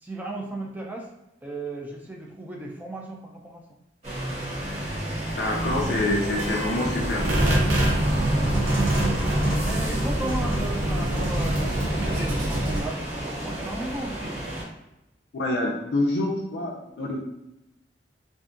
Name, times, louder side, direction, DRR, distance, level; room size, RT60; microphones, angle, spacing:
voice 1, 0.0-1.1 1.4-3.6 8.0-8.6 9.6-14.4, right 2 dB, 10° right, -1 dB, 0.4 m, -35 dB
sound 1, 4.0-14.6, right 1 dB, 40° right, 1.0 m, -32 dB
voice 2, 5.4-7.3 15.3-17.2, left 1 dB, 65° left, -1 dB, 0.4 m, -26 dB
sound 2, 5.6-12.8, right 1 dB, 85° right, 0.6 m, -25 dB
2.6 x 2.3 x 2.5 m, 0.92 s
head